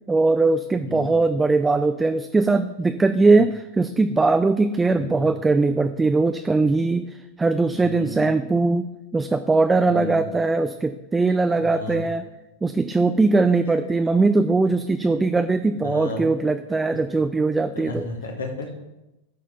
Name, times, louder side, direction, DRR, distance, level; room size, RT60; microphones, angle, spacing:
voice 1, 0.1-8.8 9.1-12.2 12.6-18.1, right 3 dB, 10° right, 9 dB, 0.3 m, -20 dB
voice 2, 0.8-1.1 5.0-5.3 7.7-8.2 9.9-10.3 11.6-12.1 13.0-13.1 15.8-16.3 17.7-18.7, left 2 dB, 70° left, 3 dB, 1.5 m, -33 dB
9.8 x 4.6 x 5.5 m, 0.98 s
figure-of-eight pair, 90°, 0 cm